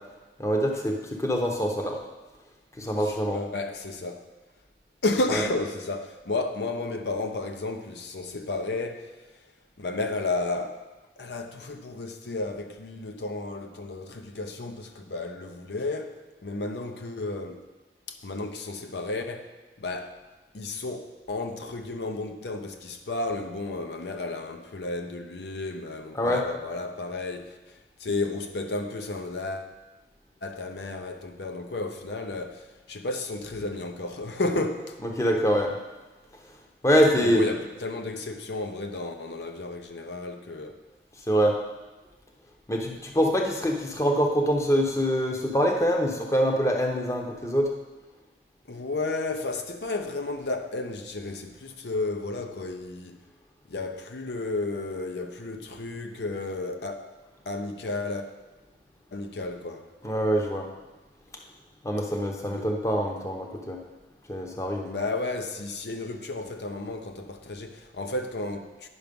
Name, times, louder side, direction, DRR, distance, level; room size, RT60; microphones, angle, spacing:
voice 1, 0.4-2.0 2.8-3.4 5.3-5.4 26.1-26.4 35.2-35.7 36.8-37.4 41.3-41.6 42.7-47.7 60.0-60.7 61.8-63.8 64.3-64.9, equal, 15° left, 1 dB, 0.8 m, -24 dB
voice 2, 3.0-4.3 5.0-9.2 9.8-10.9 11.2-17.6 18.1-19.5 19.8-20.2 20.5-29.7 30.4-35.0 37.2-40.8 48.7-53.2 53.7-57.2 57.5-58.3 59.1-59.9 62.5-62.7 64.9-68.9, left 2 dB, 75° left, 6 dB, 0.7 m, -32 dB
9.7 x 5.9 x 5.2 m, 1.2 s
head